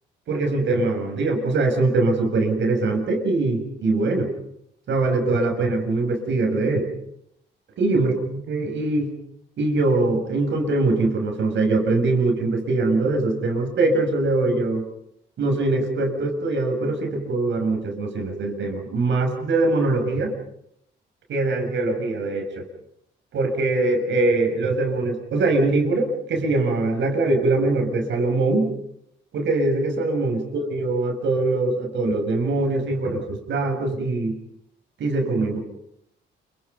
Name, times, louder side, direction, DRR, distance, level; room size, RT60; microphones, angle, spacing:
voice 1, 0.3-4.3 4.9-6.9 7.8-9.1 9.6-14.8 15.4-20.3 21.3-22.7 23.3-28.7 29.3-34.4 35.0-35.6, right 2 dB, 70° right, 4 dB, 6.5 m, -22 dB
29.0 x 24.5 x 5.5 m, 0.74 s
cardioid pair, 90°, 20 cm